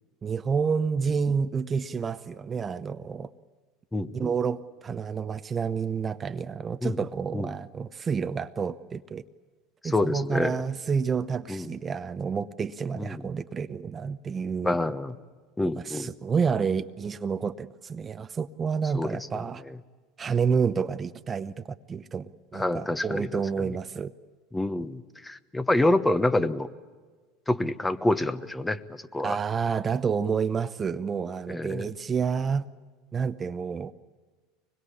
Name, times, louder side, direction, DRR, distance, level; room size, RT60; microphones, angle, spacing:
voice 1, 0.2-3.3 4.1-9.2 9.8-14.8 15.6-19.6 20.2-24.1 29.2-32.6 33.1-33.9, right 6 dB, 30° right, 12 dB, 0.8 m, -29 dB
voice 2, 3.9-4.3 6.8-7.0 7.3-7.5 9.8-10.6 11.5-11.7 13.0-13.2 14.6-15.2 15.6-16.1 18.9-19.8 22.5-23.7 24.5-26.7 27.5-29.4 31.5-31.9, left 2 dB, 10° left, 12 dB, 1.1 m, -27 dB
24.5 x 21.0 x 9.9 m, 1.4 s
hypercardioid pair, 80°, 0 cm